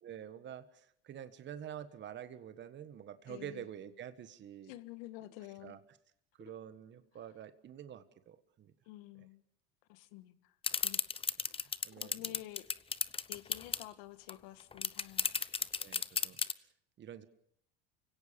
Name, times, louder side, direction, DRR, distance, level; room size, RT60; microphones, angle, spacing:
voice 1, 0.0-4.7 5.6-5.8 6.4-8.7 9.2-9.3 11.8-12.4 15.8-16.7 17.0-17.2, right 9 dB, 40° right, 11 dB, 1.5 m, -48 dB
voice 2, 3.3-3.6 4.7-5.8 6.4-6.5 8.9-9.4 9.9-10.5 10.8-11.0 11.6-12.7 13.3-15.3, left 16 dB, 70° left, 12 dB, 1.8 m, -50 dB
sound 1, 10.6-13.8 14.3-14.4 14.6-16.5, left 5 dB, 20° left, 0.9 m, -33 dB
29.0 x 17.5 x 7.0 m, 0.72 s
hypercardioid pair, 90°, 30 cm